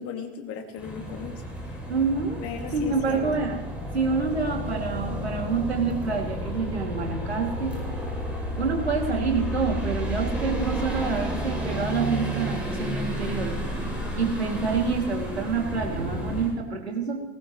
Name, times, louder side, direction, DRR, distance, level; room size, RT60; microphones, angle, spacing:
voice 1, 0.0-1.8 2.4-3.2, left 6 dB, 45° left, 4 dB, 2.5 m, -37 dB
sound 1, 0.8-16.5, equal, 5° right, 7.5 m, -31 dB
voice 2, 1.9-2.4 2.7-3.6 3.9-7.8 8.5-13.6 14.2-17.2, right 4 dB, 80° right, 1 dB, 2.8 m, -27 dB
19.5 x 18.5 x 3.2 m, 0.95 s
figure-of-eight pair, 70°, 32 cm